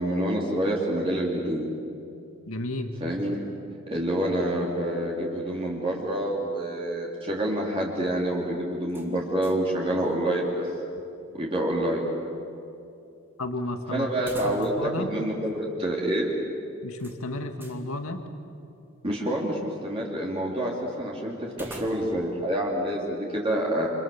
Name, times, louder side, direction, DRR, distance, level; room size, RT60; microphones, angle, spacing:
voice 1, 0.0-1.6 3.0-3.4 3.9-10.6 11.3-12.0 13.9-16.3 19.0-23.9, right 1 dB, 25° right, -4 dB, 3.3 m, -27 dB
voice 2, 2.5-2.9 13.4-14.1 14.4-15.1 16.8-18.2, left 2 dB, 75° left, 6 dB, 2.1 m, -32 dB
sound 1, 8.9-9.8 10.1-10.2 14.1-15.0 15.3-15.4 17.0-17.8 21.5-22.3, right 1 dB, 10° right, 2.4 m, -44 dB
29.0 x 28.5 x 7.3 m, 2.6 s
head